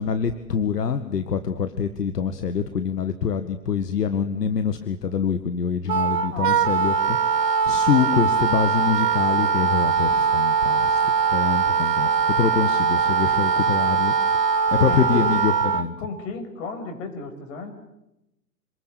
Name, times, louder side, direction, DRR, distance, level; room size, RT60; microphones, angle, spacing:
voice 1, 0.0-14.1 14.7-16.0, left 6 dB, 75° left, 10 dB, 2.0 m, -25 dB
Wind instrument woodwind instrument, 5.9-15.9, right 6 dB, 80° right, 1.9 m, -21 dB
voice 2, 14.8-15.2 16.0-17.7, left 4 dB, 50° left, 7 dB, 6.8 m, -33 dB
28.0 x 20.5 x 8.4 m, 0.88 s
figure-of-eight pair, 115°, 48 cm